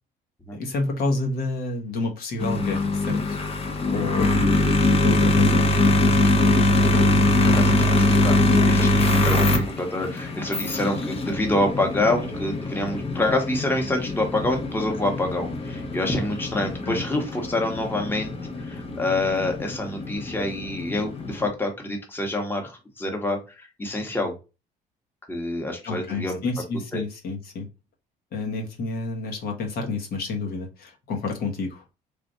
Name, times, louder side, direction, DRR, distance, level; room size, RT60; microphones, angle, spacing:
voice 1, 0.5-3.4 3.9-4.3 5.0-5.7 16.9-17.0 25.8-27.7 28.3-31.8, left 3 dB, 65° left, 2 dB, 1.1 m, -29 dB
sound 1, 2.4-21.5, left 2 dB, 35° left, 0.9 m, -23 dB
voice 2, 7.4-24.3 25.3-26.4 26.9-27.0, left 1 dB, 10° left, 2 dB, 1.2 m, -27 dB
3.5 x 2.5 x 3.9 m, 0.29 s
cardioid pair, 110°, 17 cm